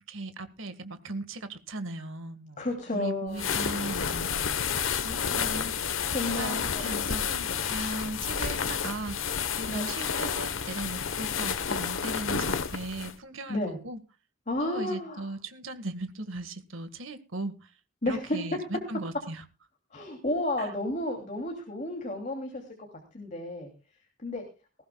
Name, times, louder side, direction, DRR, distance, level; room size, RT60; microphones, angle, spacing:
voice 1, 0.1-2.7 2.9-6.1 6.4-14.0 14.6-17.7 18.1-19.4 20.6-20.7, right 2 dB, 75° right, 10 dB, 1.8 m, -38 dB
voice 2, 2.6-3.5 6.1-6.9 9.7-9.9 13.5-13.8 14.5-15.2 18.0-18.4 19.9-22.9 23.1-23.7 24.2-24.4, left 1 dB, 35° left, 3 dB, 3.0 m, -32 dB
sound 1, 3.3-13.1, left 7 dB, 75° left, 1.2 m, -30 dB
19.5 x 16.0 x 2.3 m, 0.32 s
head